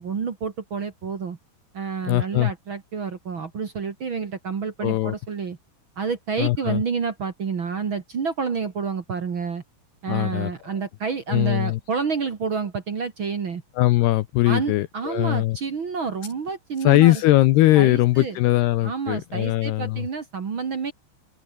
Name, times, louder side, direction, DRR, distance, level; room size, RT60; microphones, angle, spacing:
voice 1, 0.0-1.4 1.7-5.6 5.9-9.6 10.0-13.6 14.4-17.2 17.7-18.4 18.8-20.9, right 5 dB, 50° right, 1.4 m, -29 dB
voice 2, 2.1-2.5 4.8-5.2 6.4-6.8 10.1-10.5 11.3-11.8 13.8-15.6 16.8-20.1, left 17 dB, 75° left, 2.5 m, -20 dB
open air
omnidirectional pair, 5.3 m